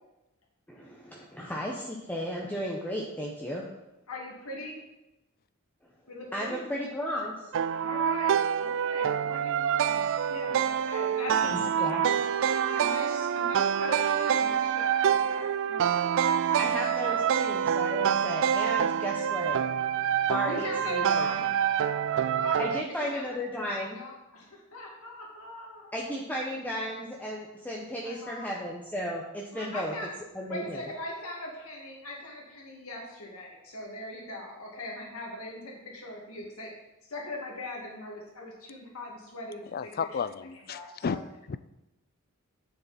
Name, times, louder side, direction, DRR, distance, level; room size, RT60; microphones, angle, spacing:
voice 1, 0.7-3.7 6.3-7.4 11.8-12.0 16.6-19.6 20.3-21.3 22.6-24.0 25.9-29.9 30.3-30.8, equal, 10° left, -3 dB, 0.9 m, -34 dB
voice 2, 4.1-4.8 6.1-6.7 7.8-11.6 12.7-16.1 17.0-17.2 20.5-21.5 22.4-23.4 23.6-25.9 28.0-28.6 29.5-30.1 30.5-36.7 37.1-39.9 40.7-41.2, left 1 dB, 80° left, -1 dB, 2.6 m, -41 dB
sound 1, 7.5-22.8, right 8 dB, 60° right, 0.3 m, -26 dB
voice 3, 11.4-11.9 39.7-41.2 41.5-41.6, left 6 dB, 45° left, 14 dB, 0.4 m, -34 dB
9.6 x 6.9 x 4.4 m, 0.96 s
head